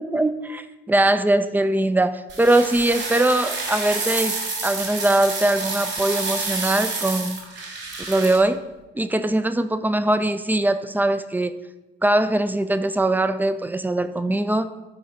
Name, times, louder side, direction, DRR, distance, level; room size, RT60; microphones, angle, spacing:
voice 1, 0.0-4.3 4.6-7.4 8.1-8.6 8.9-11.6 12.0-14.7, right 1 dB, 5° right, 12 dB, 0.5 m, -21 dB
sound 1, 2.3-8.4, right 3 dB, 50° right, 2.7 m, -29 dB
8.9 x 5.0 x 4.1 m, 1.1 s
figure-of-eight pair, 40°, 33 cm